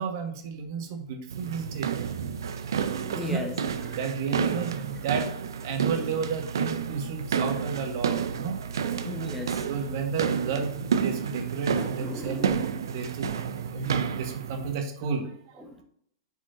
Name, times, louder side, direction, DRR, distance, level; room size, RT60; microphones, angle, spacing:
voice 1, 0.0-1.9 3.1-3.4 3.9-8.6 9.6-12.6 12.9-15.8, right 5 dB, 60° right, 4 dB, 1.6 m, -32 dB
sound 1, 1.3-14.8, right 7 dB, 75° right, 0.5 m, -30 dB
voice 2, 3.0-3.5 3.9-4.0 9.0-9.6 11.8-12.5 15.6-15.8, left 1 dB, ahead, 3 dB, 1.3 m, -36 dB
9.0 x 4.9 x 2.7 m, 0.67 s
hypercardioid pair, 110°, 2 cm